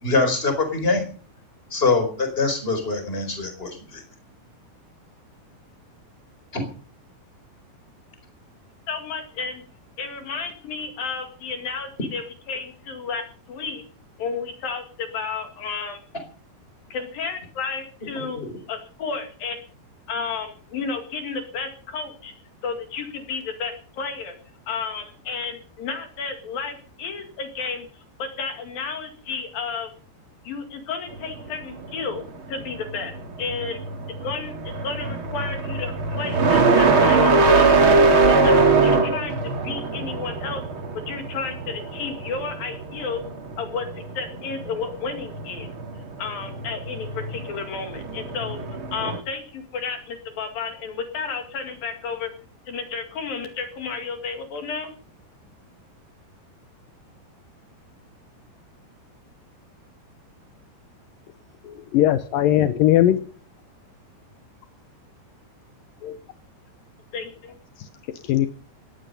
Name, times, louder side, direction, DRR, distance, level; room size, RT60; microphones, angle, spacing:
voice 1, 0.0-1.0 1.7-4.0 6.5-6.6 18.2-18.5, left 3 dB, 15° left, 7 dB, 4.3 m, -23 dB
voice 2, 8.9-9.6 10.0-13.2 13.5-13.8 14.2-16.0 16.9-18.4 18.7-19.6 20.1-22.3 22.6-24.3 24.7-27.9 28.2-29.9 30.5-33.1 33.4-33.8 34.2-40.6 41.1-43.2 43.6-43.9 44.2-45.7 46.2-52.3 52.7-54.9 67.1-67.6, left 5 dB, 60° left, 6 dB, 3.6 m, -32 dB
sound 1, 31.2-49.2, right 3 dB, 35° right, 2.4 m, -22 dB
voice 3, 61.9-63.2 66.0-66.1 68.3-68.5, left 12 dB, 75° left, 10 dB, 2.1 m, -18 dB
18.5 x 14.0 x 5.4 m, 0.42 s
omnidirectional pair, 5.1 m